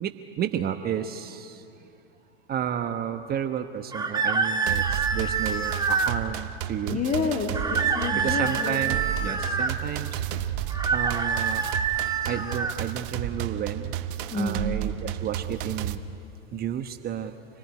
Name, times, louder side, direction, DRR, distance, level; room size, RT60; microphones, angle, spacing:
voice 1, 0.0-1.6 2.5-7.0 8.1-9.0 9.2-10.2 10.6-11.6 12.2-13.9 14.3-16.0 16.5-17.3, right 9 dB, 30° right, 7 dB, 1.2 m, -32 dB
sound 1, 3.9-6.2 7.5-9.7 10.7-12.8, right 5 dB, 15° right, 1.6 m, -26 dB
sound 2, 4.7-15.9, right 11 dB, 55° right, 1.3 m, -32 dB
voice 2, 6.9-8.8 14.3-14.7, left 4 dB, 25° left, 1 dB, 2.8 m, -29 dB
27.5 x 19.5 x 9.9 m, 2.6 s
hypercardioid pair, 90°, 31 cm